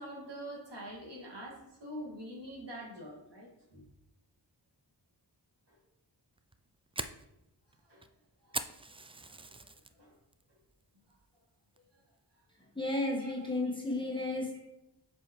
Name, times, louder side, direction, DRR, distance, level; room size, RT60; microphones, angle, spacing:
voice 1, 0.0-3.8 7.9-8.0 8.4-8.6 9.3-9.6 9.9-10.1 13.2-13.5, right 1 dB, 65° right, -4 dB, 2.3 m, -45 dB
Fire, 6.4-9.9 10.3-10.7 11.1-11.2 11.8-12.1, right 3 dB, 15° right, 0.3 m, -41 dB
voice 2, 12.7-14.6, left 2 dB, 10° left, -2 dB, 1.6 m, -33 dB
7.4 x 4.8 x 3.2 m, 0.90 s
cardioid pair, 50°, 44 cm